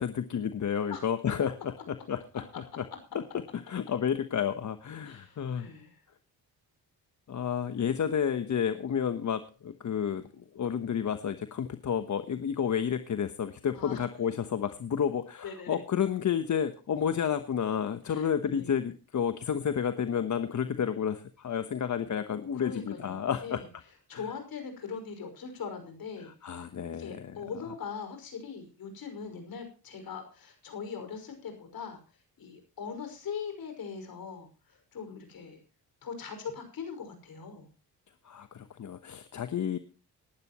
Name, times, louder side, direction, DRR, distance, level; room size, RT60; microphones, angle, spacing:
voice 1, 0.0-2.8 3.1-5.7 7.3-23.6 24.1-24.3 26.2-27.4 38.2-39.8, left 8 dB, 50° left, 10 dB, 1.1 m, -31 dB
voice 2, 5.0-5.9 13.7-14.0 15.4-15.8 18.1-18.7 22.6-23.7 24.1-26.3 27.0-32.0 32.4-35.6 36.0-37.7, left 6 dB, 65° left, 6 dB, 5.7 m, -41 dB
18.5 x 12.0 x 3.0 m, 0.34 s
cardioid pair, 80°, 38 cm